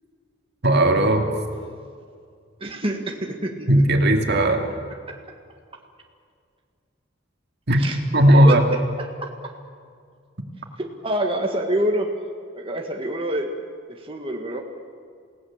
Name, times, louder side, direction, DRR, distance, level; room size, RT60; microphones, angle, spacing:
voice 1, 0.6-1.3 3.7-4.6 7.7-7.8 8.1-8.6, right 1 dB, 60° right, 3 dB, 2.3 m, -16 dB
voice 2, 2.6-3.7 5.1-5.2 7.8-8.0 8.3-9.5 11.0-12.1 12.5-13.5 13.9-14.6, right 1 dB, 30° right, 1 dB, 1.7 m, -26 dB
28.5 x 17.5 x 7.3 m, 2.2 s
head